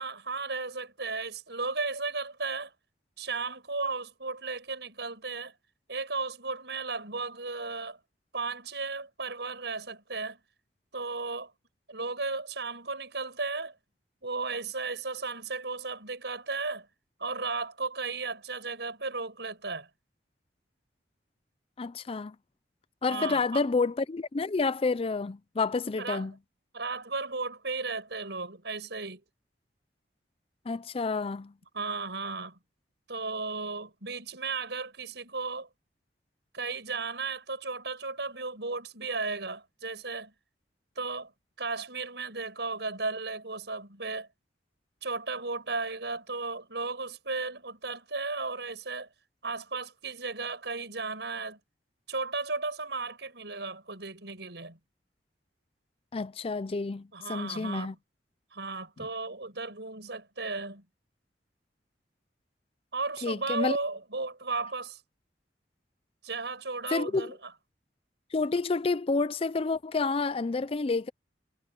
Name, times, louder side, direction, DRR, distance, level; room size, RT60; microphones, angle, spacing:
voice 1, 0.0-2.7 3.2-5.5 5.9-8.0 8.3-10.4 10.9-11.5 11.9-13.7 14.2-16.9 17.2-19.9 23.1-23.6 26.0-26.3 26.7-29.2 31.7-32.6 33.1-35.7 36.5-40.3 40.9-41.3 41.6-44.3 45.0-49.1 49.4-51.6 52.1-54.8 57.1-57.9 58.5-60.8 62.9-65.0 66.2-67.5, right 3 dB, 75° right, 6.7 m, -35 dB
voice 2, 21.8-22.4 23.0-26.3 30.7-31.5 56.1-57.9 63.2-63.8 66.9-67.3 68.3-71.1, left 4 dB, 35° left, 0.4 m, -29 dB
head